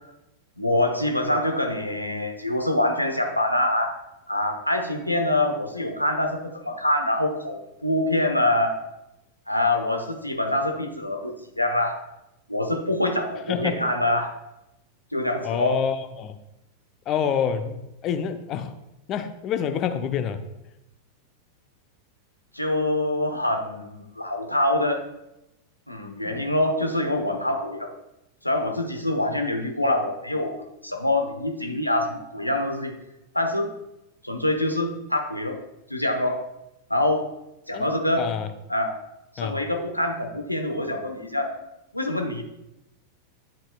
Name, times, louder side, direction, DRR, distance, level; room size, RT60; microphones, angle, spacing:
voice 1, 0.6-4.0 4.3-8.8 9.5-12.0 12.5-14.3 15.1-15.8 22.5-25.0 25.9-27.9 28.4-32.9 33.3-33.7 34.2-35.6 35.9-36.4 36.9-37.2 37.7-38.2 38.7-38.9 39.3-41.5 41.9-42.4, left 1 dB, 85° left, 4 dB, 1.0 m, -25 dB
voice 2, 15.4-16.3 17.1-18.7 19.1-20.4 26.2-26.4 37.7-38.5 39.4-39.6, left 8 dB, 35° left, 9 dB, 0.7 m, -27 dB
10.5 x 7.4 x 2.4 m, 0.90 s
figure-of-eight pair, 90°, 0 cm